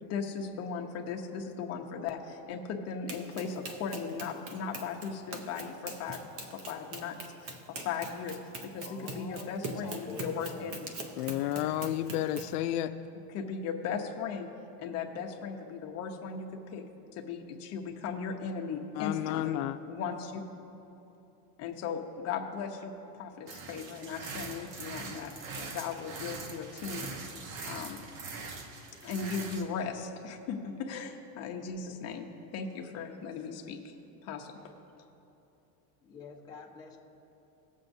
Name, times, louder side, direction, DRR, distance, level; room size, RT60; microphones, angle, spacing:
voice 1, 0.0-6.2 6.5-7.2 7.4-8.4 8.6-10.9 13.3-14.5 14.8-16.8 17.1-19.6 19.9-20.4 21.6-25.3 25.6-27.1 27.6-28.0 29.0-33.9 34.2-34.7, left 6 dB, 35° left, 1 dB, 0.9 m, -37 dB
Run, 3.1-12.6, right 2 dB, 30° right, 0.7 m, -43 dB
voice 2, 8.8-10.7 36.0-37.0, left 4 dB, 10° left, -4 dB, 0.8 m, -46 dB
voice 3, 11.2-12.9 19.0-19.8, left 13 dB, 80° left, 9 dB, 0.5 m, -31 dB
sound 1, 23.5-29.6, right 4 dB, 65° right, 1.2 m, -42 dB
18.5 x 7.5 x 2.7 m, 2.8 s
supercardioid pair, 150°, 46 cm